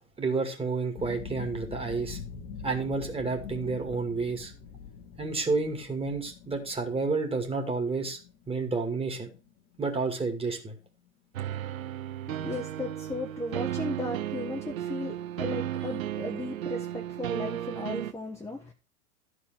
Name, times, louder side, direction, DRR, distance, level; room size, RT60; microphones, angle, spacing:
voice 1, 0.2-2.2 2.6-4.5 5.2-8.2 8.5-9.3 9.8-10.8, right 4 dB, 15° right, 2.3 m, -30 dB
sound 1, 1.0-11.1 11.4-12.2 12.6-12.7, left 6 dB, 35° left, 1.9 m, -45 dB
sound 2, 11.3-18.1, right 12 dB, 75° right, 0.7 m, -34 dB
voice 2, 12.3-18.7, left 2 dB, 5° left, 1.4 m, -36 dB
12.5 x 4.9 x 5.9 m
figure-of-eight pair, 90°, 42 cm